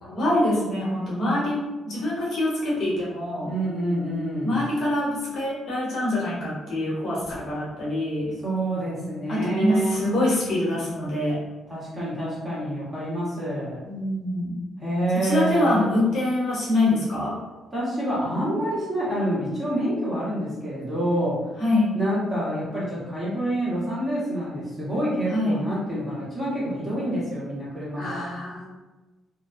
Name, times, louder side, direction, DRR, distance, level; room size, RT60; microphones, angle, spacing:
voice 1, 0.0-3.5 4.4-8.3 9.3-11.4 13.8-14.6 15.2-17.3 21.6-21.9 25.3-25.6 28.0-28.7, left 1 dB, 60° left, -6 dB, 1.0 m, -25 dB
voice 2, 3.5-4.6 8.4-10.1 11.7-13.8 14.8-15.8 17.7-21.5 21.9-28.3, right 1 dB, 15° right, -9 dB, 1.4 m, -27 dB
2.5 x 2.2 x 2.5 m, 1.1 s
cardioid pair, 90°, 0 cm